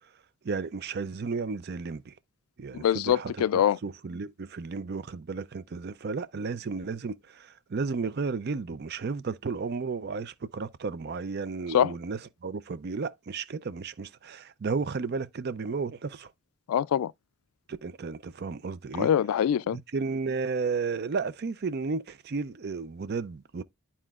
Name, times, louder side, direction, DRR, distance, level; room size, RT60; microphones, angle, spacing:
voice 1, 0.4-2.1 2.6-16.3 17.7-19.1 19.7-23.6, right 4 dB, 50° right, 0.4 m, -33 dB
voice 2, 2.7-3.8 11.7-11.9 16.7-17.1 19.0-19.8, left 9 dB, 85° left, 0.3 m, -24 dB
11.0 x 4.3 x 2.3 m
head